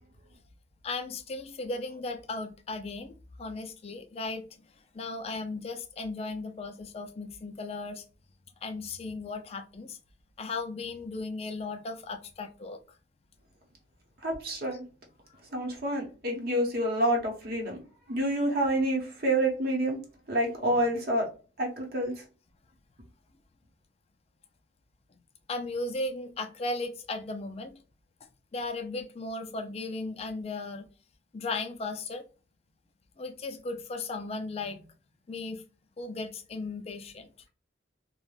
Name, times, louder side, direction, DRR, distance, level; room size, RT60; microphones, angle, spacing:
voice 1, 0.8-4.6 4.9-8.0 8.6-10.0 10.4-12.8 15.3-15.4 25.5-27.8 28.5-30.9 31.3-32.2 33.2-34.9 35.3-35.6 36.0-37.3, left 3 dB, 35° left, 0.3 m, -36 dB
voice 2, 14.2-14.8 15.5-17.8 18.1-20.0 20.3-21.3 21.6-22.2, right 1 dB, 55° right, 0.8 m, -28 dB
2.4 x 2.1 x 3.1 m
head